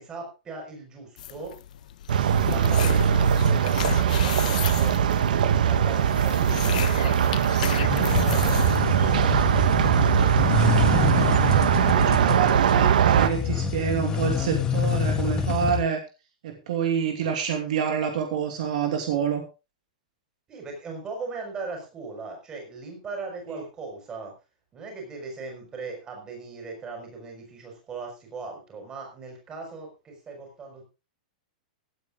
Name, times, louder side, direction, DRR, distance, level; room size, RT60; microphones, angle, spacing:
voice 1, 0.0-1.6 2.3-10.1 20.5-24.3 24.7-30.8, right 3 dB, 15° right, 1 dB, 5.8 m, -39 dB
sound 1, 1.2-9.9, left 11 dB, 65° left, 1.2 m, -35 dB
sound 2, 2.1-13.3, right 8 dB, 75° right, 1.6 m, -21 dB
sound 3, 7.8-15.8, left 7 dB, 15° left, 1.6 m, -27 dB
voice 2, 10.9-11.3 11.8-16.0 16.4-19.4 23.5-23.6, right 7 dB, 60° right, 4 dB, 2.8 m, -27 dB
17.5 x 9.6 x 3.8 m, 0.30 s
supercardioid pair, 165°, 4 cm